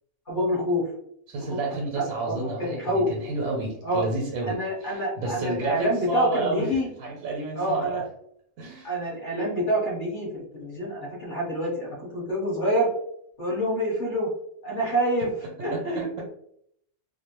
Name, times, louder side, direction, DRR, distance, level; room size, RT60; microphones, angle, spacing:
voice 1, 0.3-0.8 1.3-1.6 1.9-3.1 3.8-4.0 4.5-6.9 7.5-8.0 8.8-12.9 13.4-14.3 14.6-15.3 15.6-16.2, equal, 40° left, -5 dB, 1.1 m, -27 dB
voice 2, 1.3-6.7 7.0-8.0 8.6-8.9 15.7-16.2, right 2 dB, 90° right, -2 dB, 1.0 m, -31 dB
2.5 x 2.1 x 2.8 m, 0.69 s
omnidirectional pair, 1.4 m